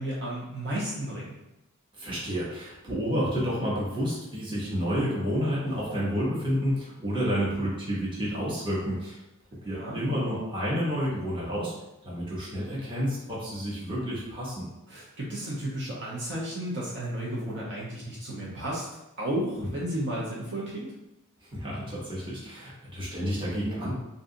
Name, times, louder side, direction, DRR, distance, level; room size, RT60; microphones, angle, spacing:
voice 1, 0.0-1.3 9.6-10.0 14.9-18.9 19.2-20.9, right 1 dB, 55° right, -6 dB, 0.8 m, -33 dB
voice 2, 2.0-9.2 9.6-11.7 12.0-14.7 19.6-19.7 21.5-23.9, equal, 25° right, -7 dB, 1.0 m, -30 dB
2.7 x 2.3 x 3.7 m, 0.94 s
head